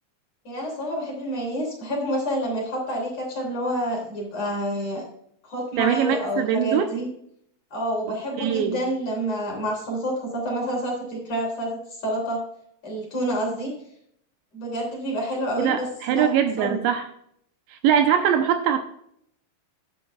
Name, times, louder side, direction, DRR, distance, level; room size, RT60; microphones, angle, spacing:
voice 1, 0.5-5.0 5.4-7.1 7.7-12.4 12.8-13.7 14.5-16.3 16.6-16.8, equal, 40° left, -2 dB, 3.7 m, -28 dB
voice 2, 5.8-6.9 8.1-8.8 15.6-17.1 17.7-18.8, right 9 dB, 80° right, 6 dB, 2.8 m, -22 dB
12.0 x 10.5 x 2.3 m, 0.70 s
omnidirectional pair, 5.5 m